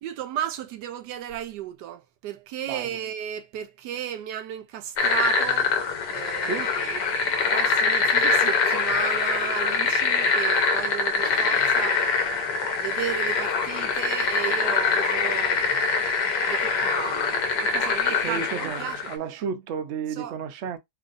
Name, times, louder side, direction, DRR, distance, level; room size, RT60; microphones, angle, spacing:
voice 1, 0.0-5.8 6.1-12.2 12.8-19.1 20.1-20.4, right 10 dB, 85° right, 1.2 m, -34 dB
sound 1, 5.0-19.2, left 4 dB, 80° left, 1.4 m, -24 dB
voice 2, 18.2-20.8, right 6 dB, 60° right, 0.7 m, -32 dB
3.3 x 2.4 x 3.9 m
omnidirectional pair, 1.8 m